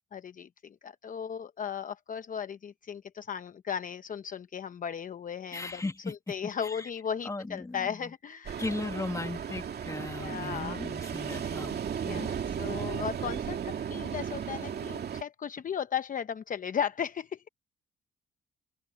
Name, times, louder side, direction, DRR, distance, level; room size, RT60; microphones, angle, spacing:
voice 1, 0.1-8.6 8.9-9.1 10.2-10.8 12.1-17.5, left 8 dB, 40° left, 0.8 m, -36 dB
voice 2, 5.5-6.1 6.6-6.9 7.2-8.1 8.6-12.4, left 2 dB, 15° left, 1.9 m, -37 dB
Ocean, 8.5-15.2, right 8 dB, 55° right, 2.4 m, -35 dB
open air
cardioid pair, 90°, 20 cm